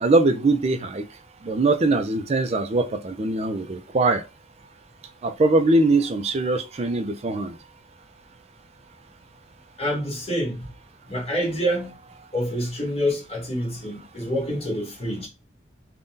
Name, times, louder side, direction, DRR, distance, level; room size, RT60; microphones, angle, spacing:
voice 1, 0.0-1.0 1.4-4.2 5.2-7.6, right 2 dB, 35° right, 0.4 m, -22 dB
voice 2, 9.8-10.7 11.1-11.9 12.3-15.3, equal, 35° left, 1.1 m, -27 dB
3.6 x 2.2 x 2.6 m
head